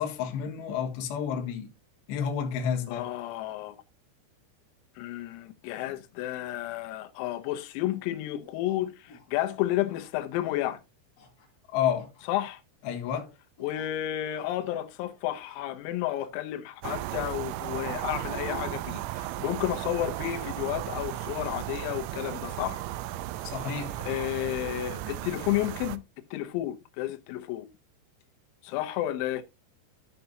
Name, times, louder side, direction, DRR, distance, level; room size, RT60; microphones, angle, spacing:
voice 1, 0.0-1.7 2.1-3.1 11.7-12.1 12.8-13.3 23.4-24.0, left 8 dB, 65° left, 3.2 m, -30 dB
voice 2, 2.9-3.8 5.0-10.8 12.3-12.6 13.6-22.8 24.0-26.0 26.3-27.7 28.6-29.4, left 14 dB, 90° left, 3.6 m, -31 dB
sound 1, 5.6-6.0 6.4-6.7 7.2-7.5 7.9-8.0 8.4-9.3 9.8-10.1 10.4-10.6 11.2-11.6 11.9-12.5 12.9-13.2 13.6-13.9 14.3-15.0 15.3-15.8 16.2-16.4 16.8-17.4 18.1-18.6 19.5-20.0, left 3 dB, 35° left, 3.5 m, -56 dB
sound 2, 16.8-26.0, right 15 dB, 90° right, 2.6 m, -35 dB
13.5 x 5.7 x 2.7 m
omnidirectional pair, 5.9 m